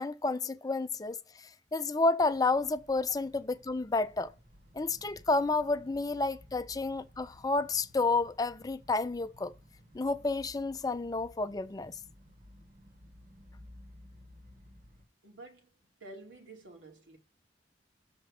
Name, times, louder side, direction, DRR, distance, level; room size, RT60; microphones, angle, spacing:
voice 1, 0.0-4.3 4.7-9.5 9.9-11.9, left 3 dB, 20° left, 0.4 m, -30 dB
sound 1, 2.3-15.1, left 1 dB, 50° right, 1.5 m, -56 dB
voice 2, 15.2-15.7 16.0-17.2, right 2 dB, 85° right, 2.7 m, -50 dB
7.1 x 4.3 x 4.9 m
head